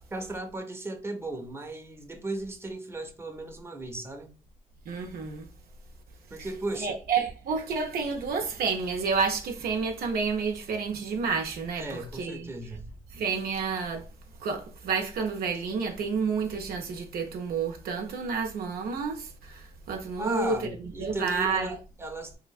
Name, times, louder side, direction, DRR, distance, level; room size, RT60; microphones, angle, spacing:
voice 1, 0.1-4.3 6.3-7.0 11.7-12.8 20.2-22.4, right 2 dB, 15° right, 0.6 m, -36 dB
voice 2, 4.9-5.5 6.8-12.5 13.1-14.1 14.4-20.6 21.0-21.7, right 5 dB, 80° right, 0.4 m, -30 dB
2.7 x 2.5 x 2.3 m
supercardioid pair, 50°, 15 cm